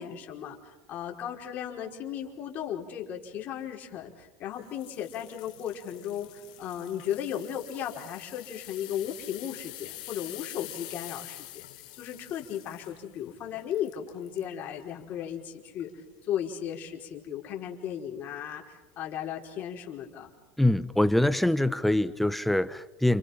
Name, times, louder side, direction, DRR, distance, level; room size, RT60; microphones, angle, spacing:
voice 1, 0.0-11.6 12.0-20.3, left 9 dB, 50° left, 1 dB, 5.0 m, -36 dB
sound 1, 4.6-14.5 15.0-15.2 15.8-15.9, left 16 dB, 80° left, 2.4 m, -46 dB
voice 2, 20.6-23.2, left 1 dB, 5° left, 14 dB, 1.0 m, -24 dB
29.5 x 29.0 x 6.0 m, 1.1 s
supercardioid pair, 105°, 4 cm